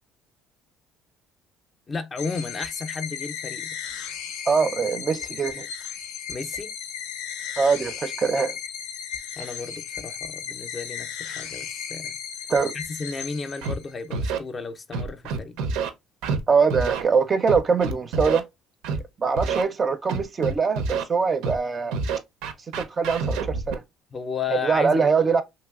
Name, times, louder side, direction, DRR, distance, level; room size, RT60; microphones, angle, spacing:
voice 1, 1.9-3.8 6.3-6.7 9.4-12.1 12.4-15.6 24.1-24.9, left 4 dB, 30° left, 0.5 m, -33 dB
sound 1, 2.2-14.1, left 8 dB, 85° left, 0.5 m, -35 dB
voice 2, 4.5-5.7 7.6-8.5 12.5-12.7 16.5-18.4 19.2-22.0 22.8-23.8 24.6-25.4, right 5 dB, 30° right, 0.4 m, -22 dB
Scratching (performance technique), 13.6-13.7 14.1-14.4 14.9-15.9 16.2-16.4 16.7-17.0 17.5-18.4 18.8-19.0 19.4-19.6 20.1-21.0 21.4-21.6 21.9-23.8, right 4 dB, 85° right, 0.5 m, -27 dB
3.0 x 2.9 x 2.3 m
cardioid pair, 115°, 0 cm